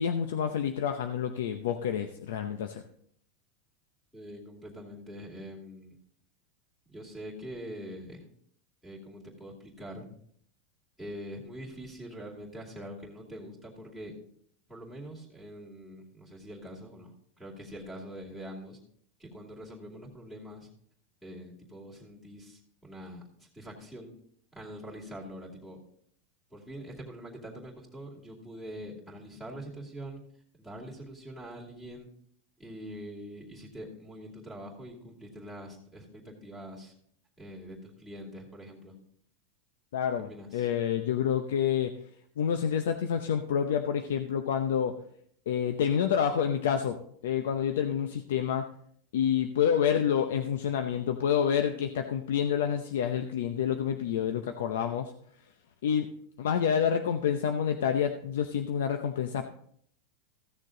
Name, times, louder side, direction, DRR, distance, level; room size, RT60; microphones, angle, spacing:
voice 1, 0.0-2.8 39.9-41.9 42.4-45.0 45.5-47.0 47.2-48.7 49.1-55.1 55.8-56.1 56.4-59.5, left 8 dB, 85° left, 6 dB, 0.7 m, -28 dB
voice 2, 4.1-6.0 6.9-8.3 8.8-10.1 11.0-14.1 14.7-17.1 17.4-18.8 19.2-20.7 21.2-24.1 24.5-25.8 26.5-30.2 30.6-32.1 32.6-36.9 37.4-38.9 40.2-40.7, equal, 5° left, -2 dB, 2.5 m, -44 dB
15.0 x 6.7 x 3.8 m, 0.65 s
supercardioid pair, 145°, 0 cm